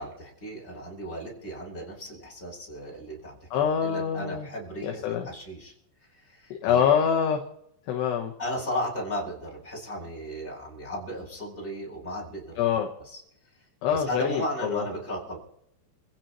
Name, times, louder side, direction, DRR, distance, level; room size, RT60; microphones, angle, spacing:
voice 1, 0.0-3.5 3.8-5.7 6.2-6.8 8.4-12.6 13.0-13.2 13.9-15.4, equal, 15° left, -3 dB, 7.6 m, -35 dB
voice 2, 3.5-4.5 4.8-5.3 6.5-7.4 7.9-8.3 12.6-12.9 13.8-14.8, left 8 dB, 70° left, 2 dB, 3.1 m, -25 dB
29.5 x 16.0 x 3.1 m, 0.73 s
omnidirectional pair, 5.3 m